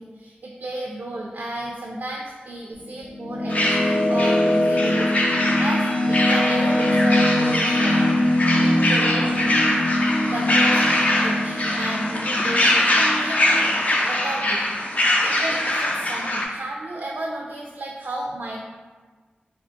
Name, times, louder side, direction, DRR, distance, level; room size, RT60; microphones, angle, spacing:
voice 1, 0.0-8.1 8.6-9.7 10.3-14.8 15.2-18.6, right 1 dB, 65° right, -2 dB, 0.3 m, -33 dB
sound 1, 2.7-14.1, left 1 dB, 70° left, 1.1 m, -23 dB
sound 2, 3.5-16.5, left 1 dB, 45° left, 0.4 m, -23 dB
3.4 x 2.4 x 2.5 m, 1.4 s
wide cardioid pair, 60°, 3 cm